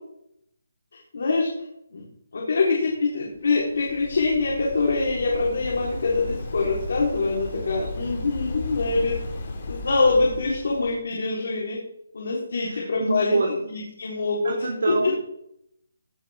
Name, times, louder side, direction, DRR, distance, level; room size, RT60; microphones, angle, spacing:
voice 1, 0.9-1.5 1.9-2.0 2.3-9.2 9.7-11.8 12.1-14.5 14.9-15.1, left 3 dB, 65° left, -3 dB, 4.4 m, -24 dB
Waves surf, 3.3-11.0, left 2 dB, 45° left, 6.4 m, -35 dB
voice 2, 12.6-13.8 14.4-15.1, right 2 dB, 80° right, 0 dB, 3.7 m, -26 dB
18.5 x 9.8 x 3.8 m, 0.77 s
hypercardioid pair, 165°, 0 cm